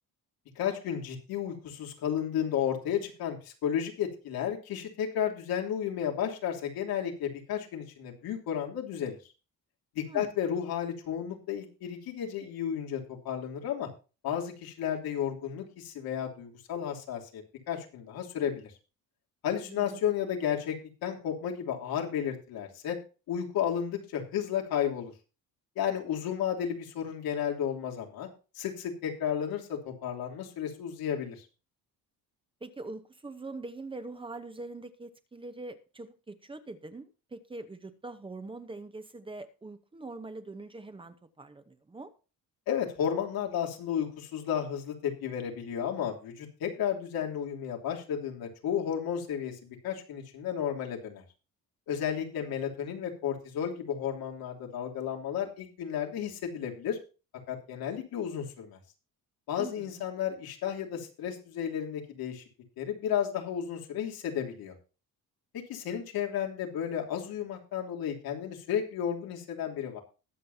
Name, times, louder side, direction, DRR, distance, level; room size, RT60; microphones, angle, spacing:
voice 1, 0.5-9.2 9.9-13.9 14.2-18.7 19.4-20.7 21.0-23.0 23.3-25.1 25.7-28.3 28.5-31.5 42.7-51.2 51.9-57.0 57.5-58.8 59.5-62.4 62.8-64.7 65.5-70.0, left 9 dB, 85° left, 1 dB, 3.1 m, -33 dB
voice 2, 19.6-20.0 32.6-42.1 59.6-60.0, right 3 dB, 15° right, 10 dB, 0.9 m, -43 dB
21.0 x 7.5 x 2.7 m, 0.33 s
cardioid pair, 160°, 35 cm